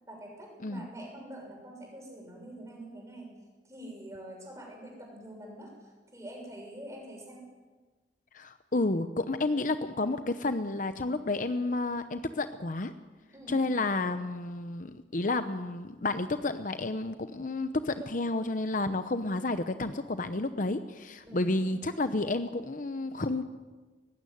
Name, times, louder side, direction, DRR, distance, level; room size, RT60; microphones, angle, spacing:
voice 1, 0.1-3.3 3.6-7.5 13.3-13.6 18.0-18.1 21.2-21.8, right 1 dB, 15° right, 0 dB, 6.4 m, -45 dB
voice 2, 8.3-12.9 13.5-23.4, left 2 dB, 45° left, 10 dB, 0.8 m, -31 dB
18.5 x 16.0 x 9.9 m, 1.3 s
head